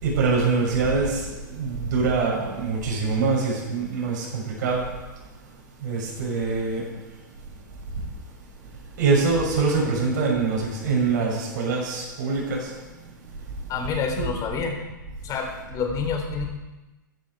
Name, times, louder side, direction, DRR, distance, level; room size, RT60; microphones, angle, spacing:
voice 1, 0.0-4.9 5.8-6.8 9.0-12.7 14.1-14.3, right 4 dB, 60° right, -2 dB, 6.3 m, -24 dB
voice 2, 13.7-14.8 15.2-16.5, left 6 dB, 30° left, 3 dB, 3.8 m, -28 dB
14.5 x 12.5 x 4.8 m, 1.1 s
hypercardioid pair, 110°, 11 cm